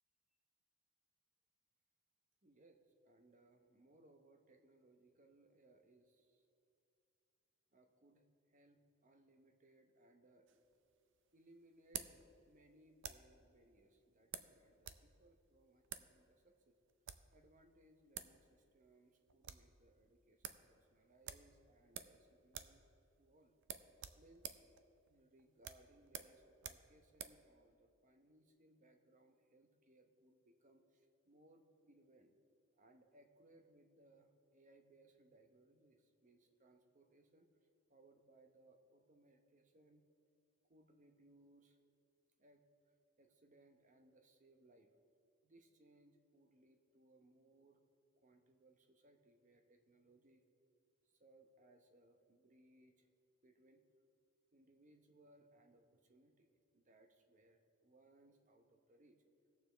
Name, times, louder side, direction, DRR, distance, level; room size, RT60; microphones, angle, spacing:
voice 1, 2.4-6.5 7.7-10.6 11.3-12.1 12.5-16.8 17.3-22.8 23.2-23.5 24.1-24.6 25.1-32.3 32.8-40.0 40.7-41.8 42.4-42.6 43.2-44.9 45.4-47.8 48.2-50.4 51.0-53.1 53.4-53.8 54.5-56.5 56.7-59.2, right 2 dB, 40° right, 5 dB, 0.8 m, -68 dB
sound 1, 10.5-13.4 14.3-15.1 15.3-15.4 15.8-16.1 16.9-17.3 17.9-18.0 18.1-18.4 18.7-18.8 19.1-19.7 20.1-20.2 20.4-20.7 21.2-22.2 22.5-22.8 23.1-23.2 23.6-27.4, right 9 dB, 60° right, 0.5 m, -50 dB
18.0 x 6.9 x 3.4 m, 2.6 s
head